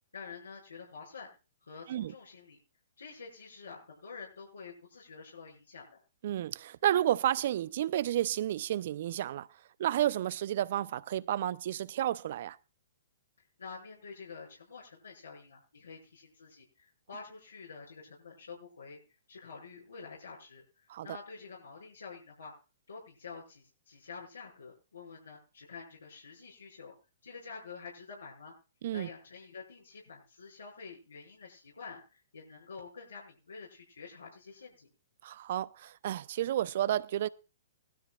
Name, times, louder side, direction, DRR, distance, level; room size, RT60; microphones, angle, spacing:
voice 1, 0.1-1.3 1.6-2.6 3.0-6.0 13.6-19.0 19.3-22.5 22.9-26.9 27.2-28.5 28.9-34.9, left 5 dB, 80° left, 6.4 m, -48 dB
voice 2, 6.2-9.5 9.8-12.6 20.9-21.1 28.8-29.1 35.2-37.3, right 12 dB, 55° right, 0.6 m, -31 dB
20.0 x 13.0 x 2.4 m
figure-of-eight pair, 120°, 0 cm